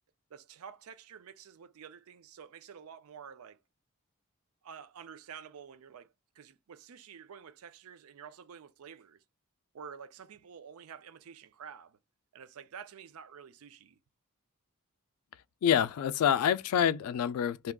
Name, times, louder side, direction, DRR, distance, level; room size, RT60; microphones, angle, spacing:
voice 1, 0.3-3.6 4.6-6.1 6.4-9.2 9.7-12.0 12.3-14.0, right 7 dB, 75° right, 0.4 m, -49 dB
voice 2, 15.6-17.7, left 9 dB, 80° left, 0.3 m, -27 dB
3.5 x 2.8 x 2.2 m
head